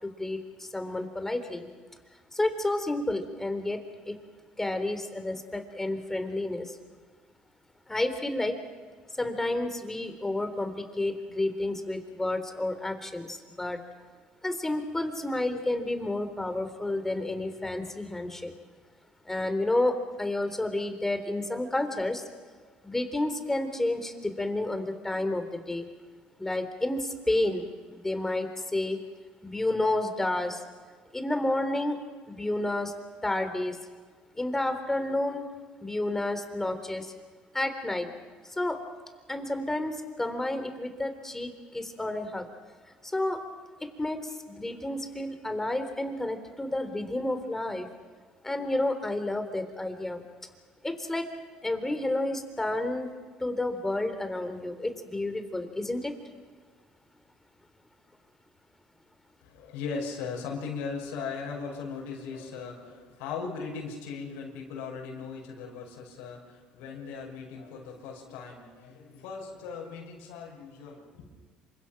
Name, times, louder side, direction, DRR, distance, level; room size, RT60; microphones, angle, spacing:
voice 1, 0.0-1.7 2.3-3.8 4.1-4.2 4.6-6.8 7.9-8.5 9.2-13.8 14.4-18.5 19.3-22.2 22.8-25.9 26.4-27.6 27.9-29.0 29.4-30.6 31.1-32.0 32.3-32.9 33.2-33.8 34.4-35.4 35.8-37.1 37.5-38.1 38.5-38.8 39.3-42.5 43.0-43.4 44.0-47.9 48.4-50.2 50.8-51.2 51.6-53.1 53.4-56.1, left 2 dB, 10° left, 8 dB, 3.7 m, -30 dB
voice 2, 59.4-71.3, left 5 dB, 90° left, -1 dB, 6.3 m, -38 dB
27.5 x 25.0 x 6.1 m, 1.5 s
supercardioid pair, 90°, 3 cm